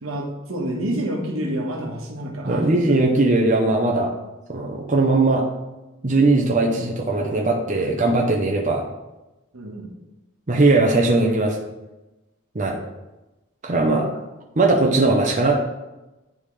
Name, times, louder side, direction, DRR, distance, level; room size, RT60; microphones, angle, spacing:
voice 1, 0.0-2.7 9.5-9.9, right 1 dB, 85° right, 0 dB, 1.4 m, -28 dB
voice 2, 2.4-4.1 4.5-5.4 6.0-8.8 10.5-11.6 12.5-12.8 13.6-14.1 14.6-15.5, right 2 dB, 35° right, 0 dB, 0.8 m, -19 dB
10.5 x 3.7 x 3.3 m, 1.0 s
head